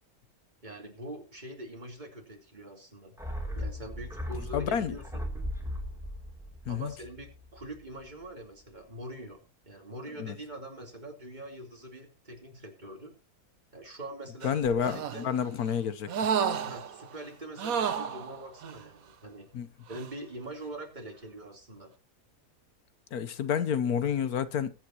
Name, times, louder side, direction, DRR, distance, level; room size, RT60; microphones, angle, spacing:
voice 1, 0.6-3.1 3.5-5.3 6.7-13.1 13.7-14.5 14.8-15.3 16.6-19.5 19.9-21.9, right 1 dB, 30° right, 3.6 m, -43 dB
sound 1, 3.2-7.8 8.1-8.2, left 1 dB, ahead, 2.9 m, -37 dB
voice 2, 4.5-5.0 6.7-6.9 10.2-10.4 14.4-16.1 19.5-19.7 23.1-24.7, left 8 dB, 80° left, 1.4 m, -29 dB
sound 2, 14.4-15.4 16.1-17.1 17.6-18.8 19.9-20.1, right 7 dB, 70° right, 1.3 m, -31 dB
20.5 x 9.3 x 2.9 m
omnidirectional pair, 1.6 m